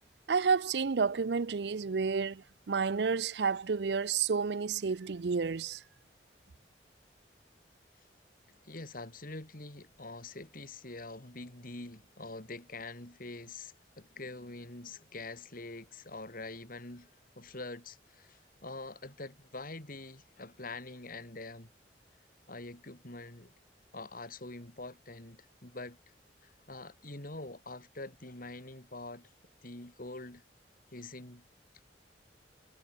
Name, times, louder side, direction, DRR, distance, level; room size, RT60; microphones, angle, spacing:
voice 1, 0.3-5.8, right 5 dB, 65° right, 0.5 m, -30 dB
voice 2, 8.6-17.1 17.4-21.7 22.5-23.5 23.9-26.0 26.4-29.3 29.6-30.4 30.9-31.4, left 2 dB, 55° left, 3.4 m, -45 dB
head